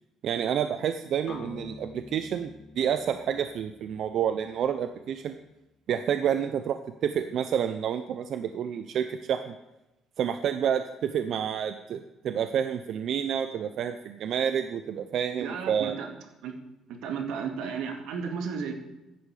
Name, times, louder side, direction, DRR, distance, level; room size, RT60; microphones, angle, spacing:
voice 1, 0.2-2.5 2.8-5.4 5.9-9.5 10.2-16.0, right 8 dB, 45° right, 9 dB, 0.6 m, -29 dB
sound 1, 1.3-5.2, left 3 dB, 35° left, 2.4 m, -47 dB
voice 2, 15.4-16.1 16.4-16.5 16.9-18.8, right 6 dB, 80° right, 4 dB, 2.3 m, -33 dB
15.0 x 10.0 x 4.9 m, 0.98 s
cardioid pair, 175°, 0 cm